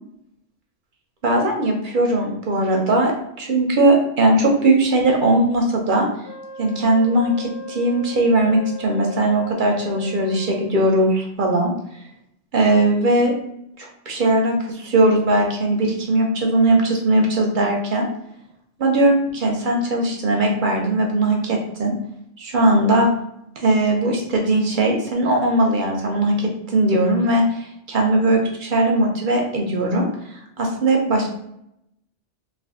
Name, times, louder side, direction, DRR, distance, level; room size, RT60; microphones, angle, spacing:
voice 1, 1.2-6.1 6.6-11.7 12.5-13.3 13.8-18.1 18.8-21.9 22.4-23.1 23.6-31.3, right 1 dB, 60° right, 1 dB, 0.6 m, -19 dB
Wind instrument woodwind instrument, 6.2-10.8, left 3 dB, 10° right, 0.6 m, -37 dB
2.5 x 2.4 x 3.4 m, 0.78 s
omnidirectional pair, 1.2 m